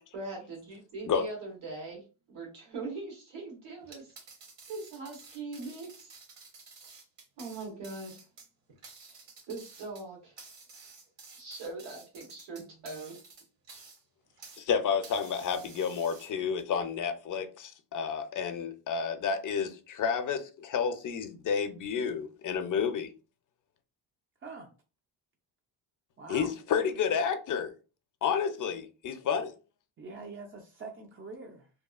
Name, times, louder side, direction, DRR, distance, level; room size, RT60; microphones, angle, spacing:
voice 1, 0.1-4.1 4.7-6.2 7.4-8.1 9.5-10.3 11.4-13.2, right 3 dB, 80° right, 1.1 m, -41 dB
sound 1, 3.8-14.7 15.0-16.6, right 4 dB, 65° right, 1.0 m, -52 dB
voice 2, 14.6-23.1 26.3-27.7 28.2-29.5, left 6 dB, 45° left, 0.5 m, -30 dB
voice 3, 24.4-24.7 26.2-26.5 30.0-31.7, right 3 dB, 30° right, 0.3 m, -44 dB
2.7 x 2.3 x 2.3 m
cardioid pair, 100°, 47 cm